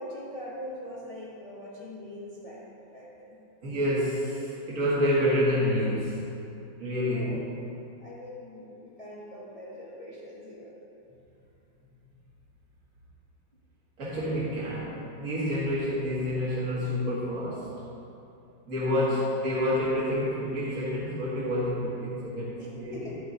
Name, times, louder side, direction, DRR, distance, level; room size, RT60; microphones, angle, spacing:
voice 1, 0.0-3.4 7.1-7.5 8.0-10.8 18.9-19.2 22.6-23.2, left 1 dB, 30° left, -6 dB, 0.6 m, -42 dB
voice 2, 3.6-6.3 6.8-7.3 14.0-17.7 18.7-23.1, equal, 45° right, -10 dB, 1.9 m, -28 dB
9.9 x 9.2 x 2.8 m, 2.8 s
omnidirectional pair, 2.0 m